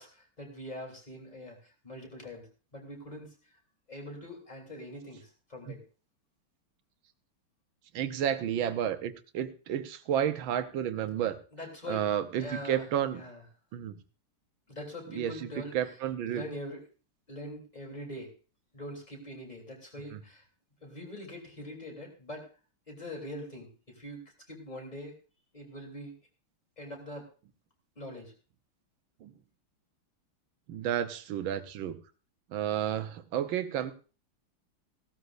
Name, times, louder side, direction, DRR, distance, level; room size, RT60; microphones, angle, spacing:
voice 1, 0.0-2.5 2.7-3.6 3.9-5.8 11.0-11.1 11.5-12.1 12.4-13.4 14.7-15.8 16.2-16.8 17.3-18.3 18.7-20.4 20.8-22.5 22.9-25.1 25.5-26.2 26.8-27.3 28.0-28.3, left 1 dB, 20° left, 1 dB, 3.3 m, -43 dB
voice 2, 7.9-11.4 11.9-13.2 13.7-14.0 15.1-15.5 15.7-16.5 29.2-29.3 30.7-32.0 32.5-33.9, right 10 dB, 70° right, 10 dB, 1.6 m, -31 dB
17.0 x 13.0 x 2.6 m, 0.35 s
omnidirectional pair, 2.4 m